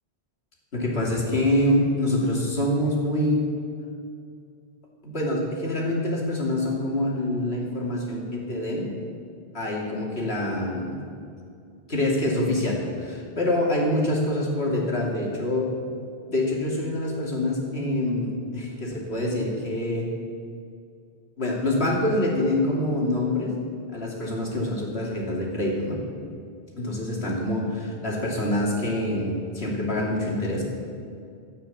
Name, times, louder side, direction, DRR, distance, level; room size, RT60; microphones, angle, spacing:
voice 1, 0.7-3.5 5.0-8.9 9.5-11.0 11.9-15.7 16.3-20.1 21.4-23.5 23.9-26.0 26.8-30.7, left 1 dB, 75° left, -3 dB, 3.2 m, -25 dB
13.5 x 9.2 x 8.6 m, 2.4 s
omnidirectional pair, 1.1 m